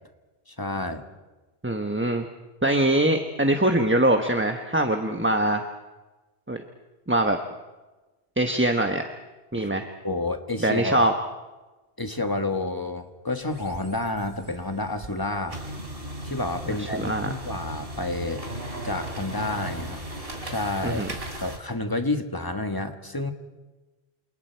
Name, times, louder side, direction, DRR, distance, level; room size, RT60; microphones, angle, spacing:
voice 1, 0.5-1.0 9.6-9.7 10.0-11.1 12.0-15.6 16.2-18.4 18.8-20.0 20.4-21.0 21.4-23.3, left 2 dB, 20° left, 6 dB, 1.5 m, -29 dB
voice 2, 1.6-2.2 2.6-5.7 6.5-6.6 7.1-7.4 8.4-9.1 9.5-9.9 10.6-11.1 16.7-17.3 20.8-21.1, right 1 dB, 10° right, 5 dB, 1.1 m, -23 dB
sound 1, 13.4-21.6, right 1 dB, 60° right, 3.4 m, -37 dB
28.5 x 28.0 x 4.6 m, 1.2 s
omnidirectional pair, 1.1 m